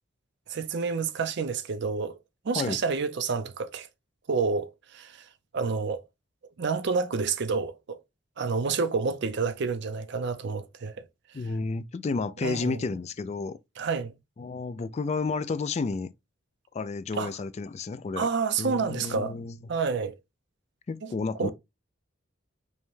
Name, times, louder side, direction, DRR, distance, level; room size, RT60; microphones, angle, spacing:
voice 1, 0.5-2.2 2.4-3.9 4.3-5.2 5.5-6.0 6.6-8.0 8.4-11.0 12.4-12.8 13.8-14.1 17.2-17.3 18.2-19.4 19.7-20.2 21.0-21.1 21.4-21.5, right 5 dB, 60° right, 0.5 m, -29 dB
voice 2, 11.3-13.6 14.4-16.1 16.7-18.3 18.6-19.6 20.9-21.5, left 4 dB, 35° left, 0.3 m, -31 dB
5.3 x 2.2 x 3.1 m
head